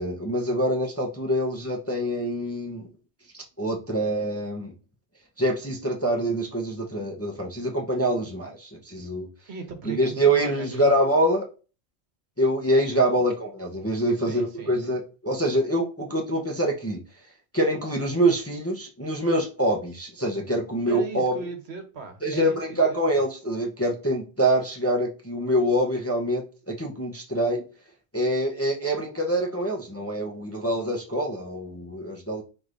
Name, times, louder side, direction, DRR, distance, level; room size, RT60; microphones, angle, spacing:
voice 1, 0.0-2.9 3.6-4.7 5.4-9.3 9.9-11.5 12.4-17.0 17.5-21.3 22.2-27.6 28.1-32.4, right 1 dB, 15° left, 0 dB, 0.6 m, -25 dB
voice 2, 9.5-11.0 14.2-15.0 20.9-23.2, right 5 dB, 70° right, 6 dB, 1.2 m, -38 dB
4.8 x 4.0 x 2.5 m, 0.34 s
omnidirectional pair, 1.2 m